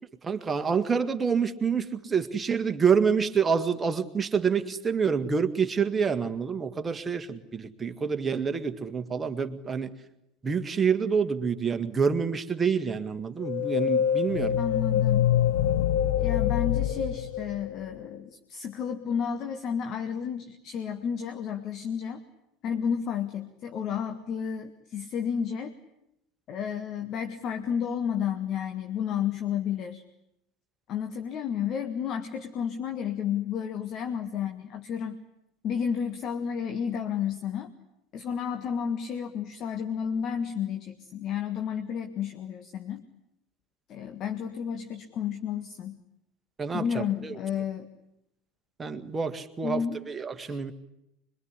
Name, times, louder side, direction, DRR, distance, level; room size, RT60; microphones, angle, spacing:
voice 1, 0.2-9.9 10.4-14.6 46.6-47.4 48.8-50.7, right 6 dB, 20° right, 8 dB, 1.9 m, -27 dB
sound 1, 13.4-18.0, left 10 dB, 60° left, 1.4 m, -25 dB
voice 2, 14.6-15.3 16.2-22.2 22.6-25.7 26.5-30.0 30.9-35.2 35.6-37.7 38.1-43.0 43.9-46.0 46.7-47.9 49.6-50.0 50.5-50.6, left 7 dB, 40° left, 7 dB, 1.7 m, -31 dB
25.5 x 23.0 x 9.9 m, 0.82 s
figure-of-eight pair, 70°, 0 cm